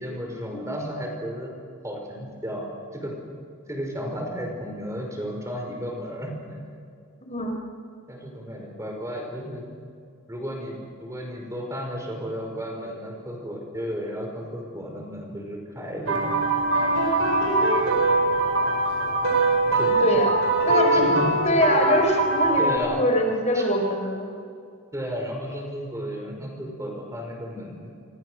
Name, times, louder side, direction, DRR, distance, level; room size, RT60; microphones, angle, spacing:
voice 1, 0.0-1.5 1.8-3.1 3.7-6.6 8.1-9.7 10.3-16.5 19.7-19.9 20.9-21.3 22.6-23.0 23.5-23.6 24.9-27.9, equal, 15° right, 2 dB, 5.2 m, -33 dB
Silent Movie - Sam Fox - Fairy, 16.1-22.8, right 2 dB, 90° right, 5.6 m, -22 dB
voice 2, 20.0-20.4 20.6-21.0 21.4-24.3, equal, 35° left, 3 dB, 4.5 m, -23 dB
29.5 x 26.5 x 6.4 m, 2.4 s
head